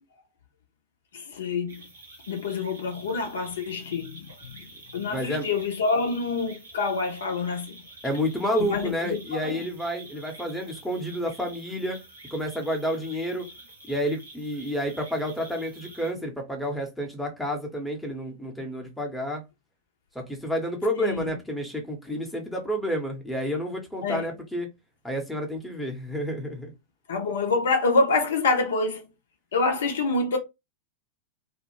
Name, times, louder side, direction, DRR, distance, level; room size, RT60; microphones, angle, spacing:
voice 1, 1.1-1.8 2.3-4.6 4.9-7.7 8.6-9.6 20.9-21.3 24.0-24.3 27.1-29.1 29.5-30.4, left 3 dB, 65° left, 0.5 m, -26 dB
sound 1, 1.7-16.1, right 2 dB, 75° right, 0.9 m, -48 dB
voice 2, 5.1-5.5 8.0-12.0 12.3-13.4 13.9-19.4 20.1-24.7 25.0-26.7, equal, 5° left, 0.7 m, -30 dB
2.4 x 2.0 x 2.9 m
figure-of-eight pair, 90°, 0 cm